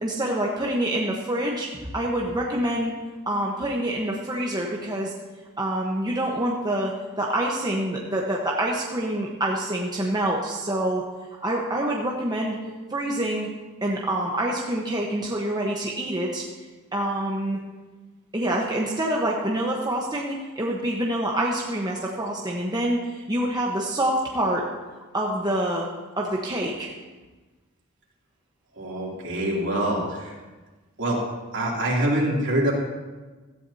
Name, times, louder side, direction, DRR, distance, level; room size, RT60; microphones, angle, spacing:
voice 1, 0.0-3.0 3.3-5.1 5.6-6.9 7.2-11.0 11.4-12.6 12.9-13.5 13.8-16.5 16.9-17.6 18.3-24.7 25.1-25.9 26.2-26.9, right 1 dB, 20° right, -2 dB, 1.1 m, -26 dB
voice 2, 28.8-30.3 31.0-31.2 31.5-32.7, right 1 dB, 60° right, -3 dB, 2.9 m, -25 dB
16.5 x 13.5 x 2.8 m, 1.3 s
head